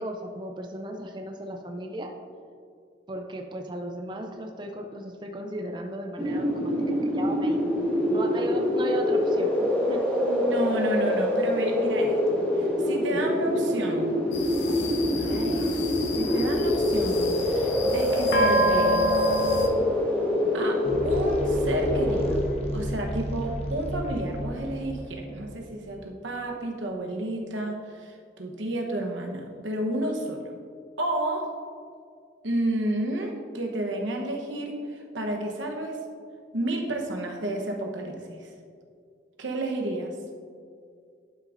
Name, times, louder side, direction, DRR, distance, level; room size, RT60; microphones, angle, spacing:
voice 1, 0.0-2.1 3.1-7.6 8.1-10.0 13.1-13.2, right 1 dB, 25° right, 3 dB, 0.4 m, -35 dB
sound 1, 6.2-22.4, left 1 dB, 10° left, 1.3 m, -25 dB
voice 2, 10.2-14.1 15.1-15.8 16.1-19.1 20.5-22.4 22.7-30.4 31.0-31.5 32.4-36.0 36.5-38.5 39.4-40.1, right 1 dB, 90° right, 1 dB, 1.0 m, -31 dB
sound 2, 14.3-19.7, equal, 70° left, 0.8 m, -29 dB
sound 3, 20.8-26.0, equal, 35° left, 0.8 m, -33 dB
11.5 x 6.0 x 2.6 m, 2.2 s
head